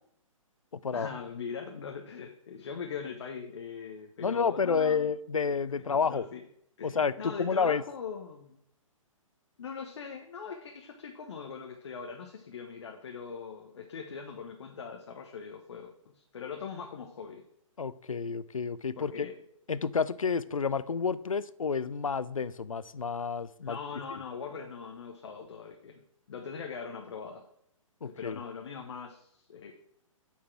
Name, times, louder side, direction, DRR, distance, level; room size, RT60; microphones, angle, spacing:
voice 1, 0.9-5.1 6.0-6.4 6.8-8.6 9.6-17.4 19.0-19.4 23.6-26.0 26.3-27.4 28.0-29.8, left 6 dB, 55° left, 2 dB, 1.1 m, -41 dB
voice 2, 4.2-6.3 6.8-7.8 17.8-19.3 19.7-23.8 28.0-28.4, left 5 dB, 80° left, 15 dB, 0.6 m, -30 dB
9.2 x 4.7 x 6.0 m, 0.71 s
figure-of-eight pair, 125°, 17 cm